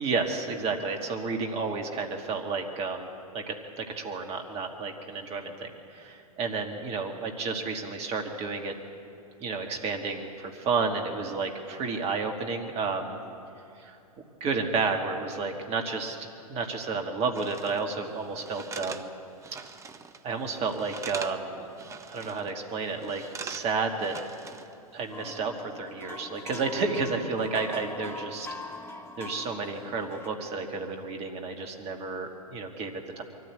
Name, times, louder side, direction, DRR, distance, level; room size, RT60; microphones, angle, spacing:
voice 1, 0.0-3.1 3.3-8.7 9.4-13.2 13.8-19.1 20.2-21.7 22.1-24.1 24.9-28.5 29.2-33.2, right 4 dB, 30° right, 4 dB, 2.2 m, -31 dB
sound 1, 17.3-17.8 18.4-20.2 20.5-21.4 21.7-22.5 23.0-24.7 25.1-25.3, right 5 dB, 15° right, 0.8 m, -42 dB
sound 2, 25.1-30.3, left 3 dB, 15° left, 1.3 m, -42 dB
23.5 x 14.0 x 8.3 m, 2.8 s
figure-of-eight pair, 95°, 19 cm